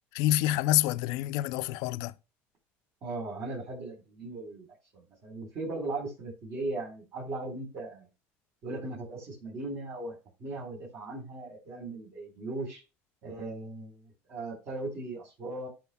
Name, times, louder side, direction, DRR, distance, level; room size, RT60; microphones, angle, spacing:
voice 1, 0.1-2.1, left 14 dB, 80° left, 0.5 m, -27 dB
voice 2, 3.0-4.7 4.9-8.1 8.6-10.1 10.4-12.8 13.2-15.7, right 2 dB, 50° right, 4.1 m, -38 dB
14.0 x 6.3 x 2.3 m
supercardioid pair, 110°, 6 cm